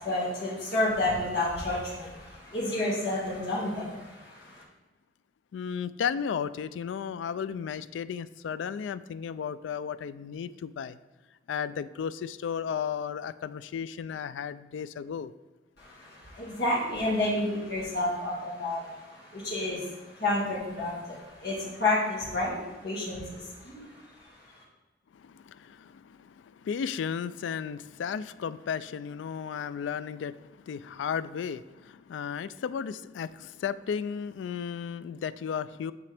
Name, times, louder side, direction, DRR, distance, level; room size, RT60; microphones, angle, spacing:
voice 1, 0.0-4.6 15.8-24.6, left 2 dB, 65° left, -7 dB, 1.8 m, -31 dB
voice 2, 5.5-11.0 11.5-15.3 25.1-35.9, left 7 dB, 90° left, 15 dB, 0.3 m, -34 dB
8.3 x 6.1 x 3.4 m, 1.3 s
head